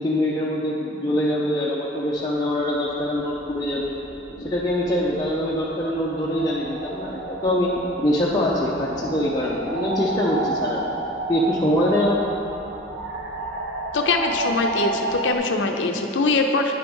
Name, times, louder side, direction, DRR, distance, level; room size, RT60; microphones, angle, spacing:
voice 1, 0.0-3.9 4.4-10.8 11.3-12.2, left 1 dB, 20° left, -6 dB, 0.6 m, -23 dB
sound 1, 2.1-15.4, right 2 dB, 75° right, 0.8 m, -32 dB
voice 2, 13.9-16.7, left 3 dB, 85° left, 4 dB, 0.5 m, -22 dB
9.6 x 4.6 x 5.3 m, 2.9 s
head